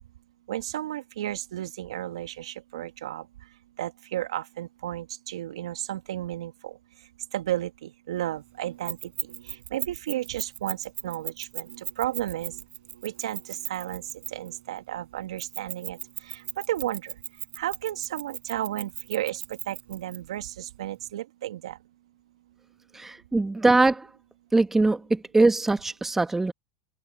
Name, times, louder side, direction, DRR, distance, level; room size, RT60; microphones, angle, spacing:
voice 1, 0.5-3.3 3.8-6.8 7.3-12.6 12.9-17.1 17.6-21.8, right 13 dB, 80° right, 2.3 m, -33 dB
Keys jangling, 8.9-14.6 15.4-20.2, right 12 dB, 45° right, 6.1 m, -36 dB
voice 2, 22.9-24.1 24.5-26.5, right 2 dB, 10° right, 1.7 m, -22 dB
open air
hypercardioid pair, 95°, 3 cm